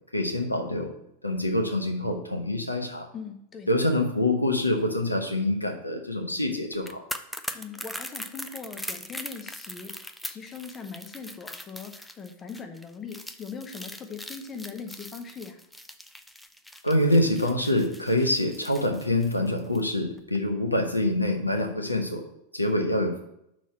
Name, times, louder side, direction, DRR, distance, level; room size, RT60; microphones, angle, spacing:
voice 1, 0.1-0.9 1.2-3.1 3.7-7.0 16.8-22.2 22.5-23.2, left 1 dB, 85° left, 3 dB, 1.0 m, -25 dB
voice 2, 3.1-3.7 7.5-15.6, left 5 dB, 20° left, 5 dB, 0.8 m, -40 dB
sound 1, 6.7-19.9 20.2-20.4, left 1 dB, 5° left, 0.5 m, -41 dB
6.1 x 4.3 x 5.8 m, 0.77 s
figure-of-eight pair, 90°, 0 cm